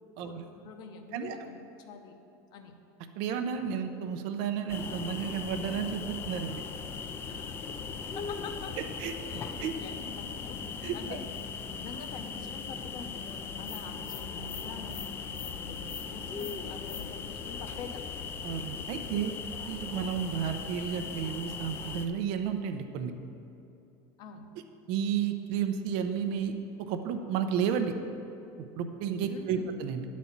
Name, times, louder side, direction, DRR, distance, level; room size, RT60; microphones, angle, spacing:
voice 1, 0.2-2.2 2.5-2.7 7.3-7.8 8.1-8.7 9.3-10.6 10.9-11.3 11.6-18.1 19.0-19.1 24.2-24.5 29.3-29.7, left 5 dB, 45° left, 5 dB, 0.8 m, -46 dB
voice 2, 3.2-6.6 9.0-9.1 9.6-9.7 10.8-11.2 18.4-19.3 19.7-23.1 24.9-26.5 26.8-27.9 28.6-30.0, right 8 dB, 55° right, 7 dB, 0.6 m, -32 dB
sound 1, 4.7-22.1, left 5 dB, 20° left, 0.4 m, -38 dB
10.5 x 4.2 x 7.2 m, 2.7 s
cardioid pair, 165°, 10 cm